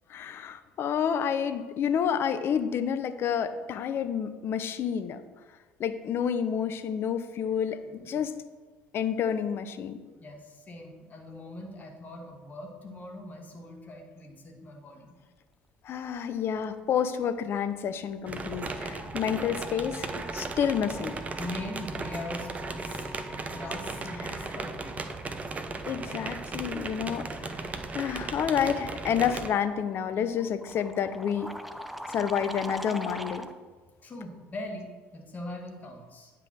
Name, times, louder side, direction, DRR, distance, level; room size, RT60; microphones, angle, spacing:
voice 1, 0.1-5.2 5.8-7.8 8.1-8.4 8.9-10.0 15.8-21.2 24.2-24.5 25.9-27.6 27.9-31.5 32.1-33.5, left 8 dB, 45° left, 11 dB, 0.8 m, -29 dB
voice 2, 7.9-8.2 10.2-15.2 21.4-23.1 23.5-25.0 34.0-34.9 35.1-36.3, left 1 dB, 30° left, 1 dB, 2.2 m, -41 dB
sound 1, 17.7-18.0 18.3-33.6, equal, ahead, 0.7 m, -44 dB
sound 2, 18.3-29.5, right 3 dB, 25° right, 1.0 m, -36 dB
9.9 x 5.8 x 6.3 m, 1.3 s
figure-of-eight pair, 60°, 5 cm